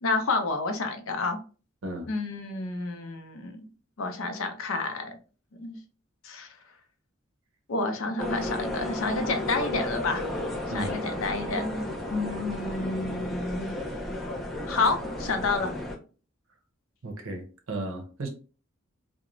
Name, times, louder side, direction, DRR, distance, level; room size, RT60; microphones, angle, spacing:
voice 1, 0.0-1.4 2.1-3.7 4.0-5.2 5.6-5.8 6.2-6.5 7.7-10.3 10.7-11.7 12.1-13.7 14.7-15.7, left 3 dB, 75° left, 6 dB, 0.5 m, -29 dB
sound 1, 8.2-16.0, left 1 dB, ahead, 0.3 m, -33 dB
voice 2, 17.0-18.3, right 1 dB, 70° right, 4 dB, 0.6 m, -34 dB
2.4 x 2.1 x 2.9 m, 0.37 s
head